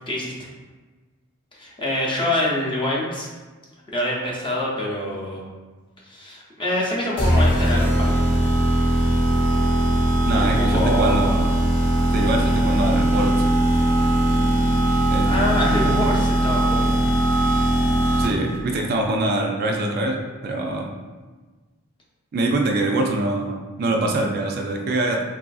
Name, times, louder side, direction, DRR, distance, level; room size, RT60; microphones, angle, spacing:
voice 1, 1.6-3.3 3.9-5.4 6.0-8.3 10.3-11.2 15.0-17.0, left 1 dB, 25° left, -4 dB, 0.5 m, -25 dB
sound 1, 7.2-18.6, right 1 dB, 60° left, 0.8 m, -20 dB
voice 2, 10.2-11.5 12.1-13.4 15.1-15.6 18.2-20.9 22.3-25.2, right 2 dB, 45° right, 2 dB, 0.3 m, -24 dB
3.2 x 2.4 x 2.3 m, 1.3 s
head